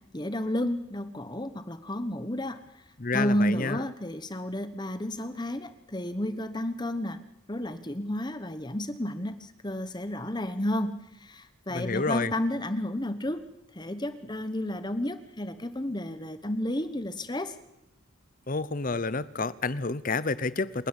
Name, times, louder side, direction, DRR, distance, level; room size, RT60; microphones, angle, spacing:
voice 1, 0.1-2.6 3.1-7.2 7.5-13.4 13.7-17.5, left 1 dB, 20° left, 1.2 m, -31 dB
voice 2, 3.0-3.8 11.7-12.3 18.5-20.9, left 3 dB, 40° left, 0.8 m, -29 dB
27.5 x 10.5 x 9.9 m
head